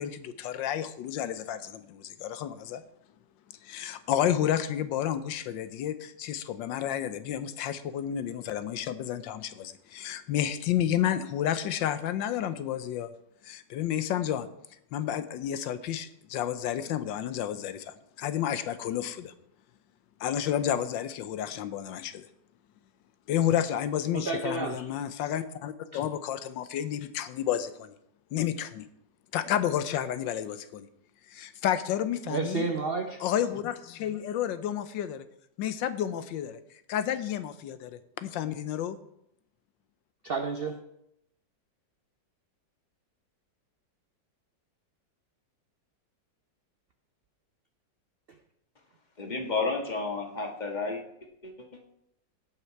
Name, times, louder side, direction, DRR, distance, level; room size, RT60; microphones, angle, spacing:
voice 1, 0.0-2.8 3.6-13.1 13.4-14.5 14.9-19.3 20.2-22.2 23.3-27.9 28.3-28.9 29.3-30.9 31.3-32.7 33.2-35.2 35.6-36.6 36.9-39.0, left 10 dB, 85° left, 12 dB, 1.4 m, -31 dB
voice 2, 24.1-24.9 25.9-26.0 32.3-33.3 40.2-40.8, right 4 dB, 85° right, 6 dB, 0.5 m, -31 dB
voice 3, 49.2-51.0 51.4-51.9, left 3 dB, 25° left, 2 dB, 1.5 m, -32 dB
16.5 x 5.7 x 4.6 m, 0.77 s
omnidirectional pair, 2.0 m